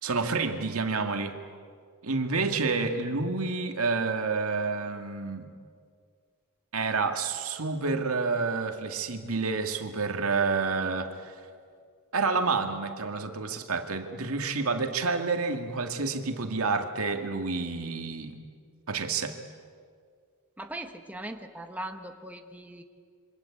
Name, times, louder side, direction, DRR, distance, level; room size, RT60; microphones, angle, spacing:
voice 1, 0.0-1.4 2.0-5.5 6.7-11.3 12.1-18.4 18.9-19.4, right 4 dB, 75° right, 5 dB, 2.2 m, -29 dB
voice 2, 20.6-22.8, right 1 dB, 5° right, 5 dB, 1.3 m, -39 dB
27.5 x 24.5 x 8.7 m, 2.1 s
head